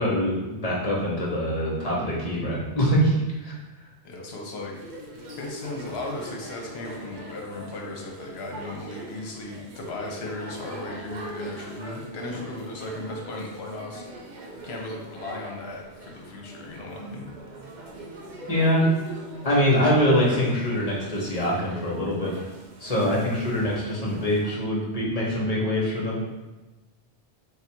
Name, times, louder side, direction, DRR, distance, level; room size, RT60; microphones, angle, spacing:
voice 1, 0.0-3.6 18.5-18.8 19.4-22.3 22.8-26.2, equal, 40° left, -4 dB, 0.9 m, -24 dB
voice 2, 4.0-4.8 5.4-14.1 14.6-17.3, left 2 dB, 70° left, 0 dB, 0.9 m, -36 dB
sound 1, 4.7-24.5, right 1 dB, 50° right, 0.7 m, -42 dB
3.4 x 2.4 x 4.4 m, 1.1 s
omnidirectional pair, 1.1 m